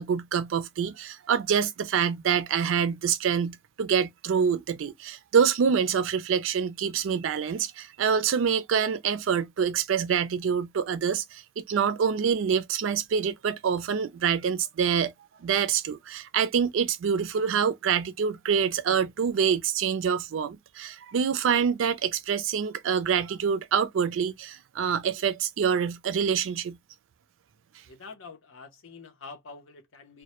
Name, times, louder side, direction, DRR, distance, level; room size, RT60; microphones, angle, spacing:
voice 1, 0.0-15.1 15.4-26.8, right 7 dB, 80° right, 0.4 m, -26 dB
voice 2, 27.9-30.2, left 4 dB, 80° left, 0.7 m, -46 dB
2.1 x 2.0 x 2.9 m
head